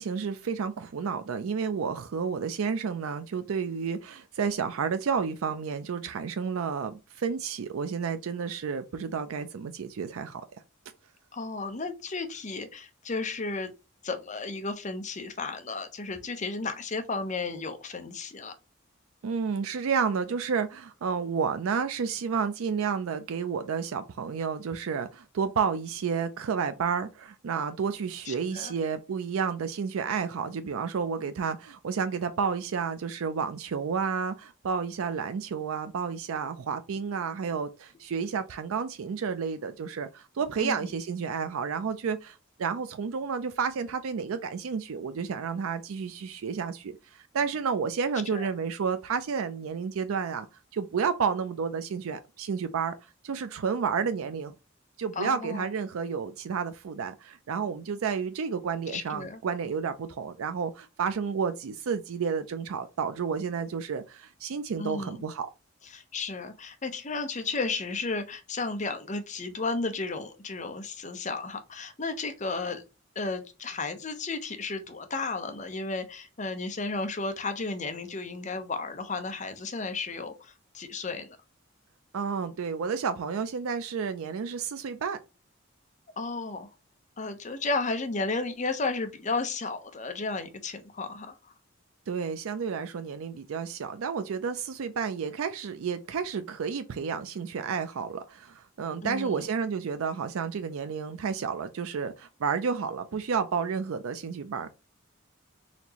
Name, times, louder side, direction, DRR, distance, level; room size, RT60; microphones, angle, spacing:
voice 1, 0.0-10.4 19.2-50.5 50.7-52.9 53.2-54.5 55.0-65.5 82.1-85.2 92.1-104.7, right 6 dB, 90° right, 0.4 m, -31 dB
voice 2, 11.3-13.7 14.0-18.5 28.3-28.7 40.6-40.9 48.3-48.5 55.2-55.7 58.9-59.4 64.8-65.2 65.9-72.8 73.2-81.4 86.2-86.7 87.2-91.4 99.0-99.4, left 3 dB, 35° left, 0.7 m, -33 dB
4.2 x 2.9 x 2.8 m
head